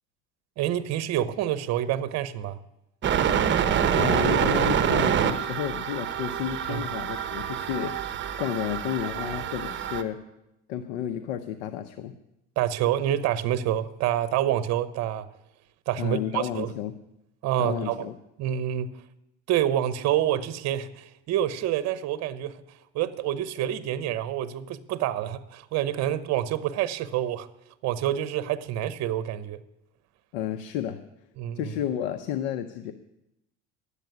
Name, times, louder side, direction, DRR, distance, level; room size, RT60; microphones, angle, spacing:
voice 1, 0.6-2.6 6.7-6.8 12.6-15.3 15.9-16.7 17.4-18.1 18.4-19.0 19.5-27.5 27.8-29.6 31.4-31.7, right 11 dB, 60° right, 14 dB, 0.9 m, -27 dB
sound 1, 3.0-10.0, right 8 dB, 40° right, 1.1 m, -26 dB
voice 2, 3.9-10.2 10.7-12.1 16.0-16.9 17.6-18.1 30.3-31.0 31.6-32.9, left 10 dB, 80° left, 8 dB, 0.8 m, -31 dB
10.5 x 8.3 x 9.3 m, 0.88 s
supercardioid pair, 100°, 30 cm